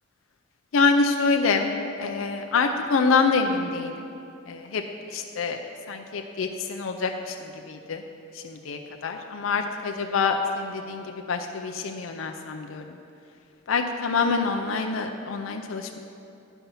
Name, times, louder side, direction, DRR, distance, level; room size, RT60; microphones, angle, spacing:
voice 1, 0.7-4.1 4.5-4.8 5.1-8.0 8.3-12.8 13.7-16.0, left 4 dB, 80° left, 4 dB, 0.5 m, -26 dB
10.0 x 5.7 x 5.4 m, 2.5 s
head